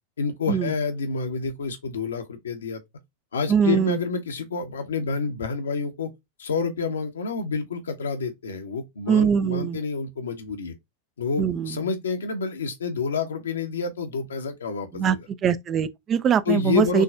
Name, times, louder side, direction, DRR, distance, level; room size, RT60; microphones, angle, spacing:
voice 1, 0.2-2.8 3.3-6.1 6.4-10.7 11.2-15.2 16.5-17.0, left 5 dB, 70° left, 1.1 m, -28 dB
voice 2, 3.5-4.0 9.1-9.8 11.4-11.8 14.9-15.2 15.4-17.0, right 7 dB, 25° right, 0.5 m, -22 dB
6.2 x 3.1 x 2.5 m
figure-of-eight pair, 90°, 0 cm